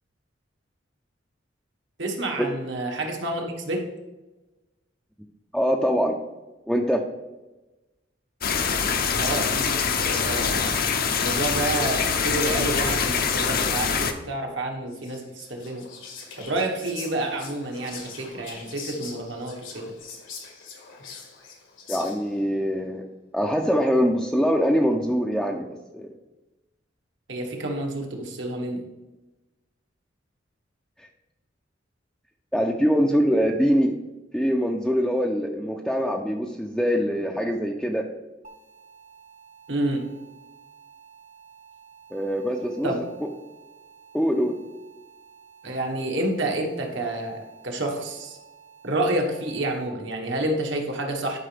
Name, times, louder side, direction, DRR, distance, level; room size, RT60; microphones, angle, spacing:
voice 1, 2.0-3.9 9.2-10.8 11.2-15.9 16.4-19.9 27.3-28.9 39.7-40.1 42.8-43.0 45.6-48.4 48.8-51.4, right 2 dB, 70° right, 2 dB, 1.4 m, -29 dB
voice 2, 5.5-6.2 6.7-7.0 21.9-23.0 23.3-26.1 31.0-31.1 32.5-33.9 34.3-38.1 42.1-42.9 44.1-44.5, equal, ahead, -1 dB, 0.5 m, -23 dB
sound 1, 8.4-14.1, left 6 dB, 50° left, 0.7 m, -24 dB
Whispering, 14.9-22.4, left 5 dB, 80° left, 1.6 m, -43 dB
sound 2, 38.4-49.9, right 7 dB, 45° right, 1.2 m, -52 dB
11.5 x 5.2 x 3.4 m, 1.1 s
head